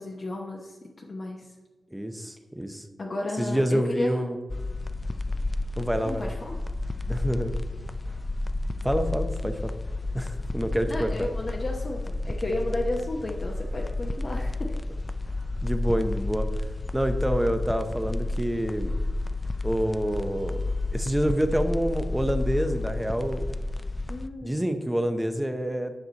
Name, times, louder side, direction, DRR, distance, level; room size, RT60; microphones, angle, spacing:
voice 1, 0.0-1.5 3.0-4.4 6.0-6.6 10.9-14.8 24.1-24.5, left 2 dB, 45° left, -1 dB, 1.0 m, -33 dB
voice 2, 1.9-2.9 3.4-4.4 5.7-6.3 7.1-7.6 8.8-9.8 10.1-11.3 15.6-16.5 16.9-19.0 19.6-20.6 20.9-23.4 24.4-25.9, equal, 5° right, 7 dB, 0.8 m, -27 dB
sound 1, 4.5-24.3, left 2 dB, 20° left, 0.4 m, -31 dB
9.7 x 6.1 x 4.0 m, 1.2 s
wide cardioid pair, 100°, 0 cm